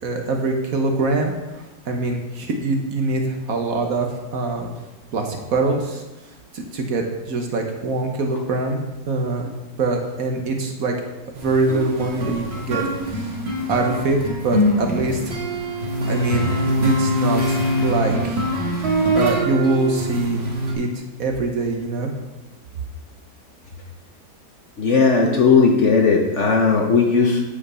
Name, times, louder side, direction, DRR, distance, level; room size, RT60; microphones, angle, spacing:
voice 1, 0.0-4.7 5.1-6.0 6.5-9.4 9.8-10.9 11.3-13.4 13.7-14.2 14.4-15.3 16.0-18.4 19.1-22.1, right 3 dB, 55° right, 3 dB, 1.3 m, -24 dB
sound 1, 11.4-20.7, equal, 40° right, 1.5 m, -23 dB
voice 2, 24.8-27.4, left 5 dB, 50° left, 1 dB, 1.0 m, -16 dB
8.6 x 5.1 x 5.6 m, 1.1 s
omnidirectional pair, 1.9 m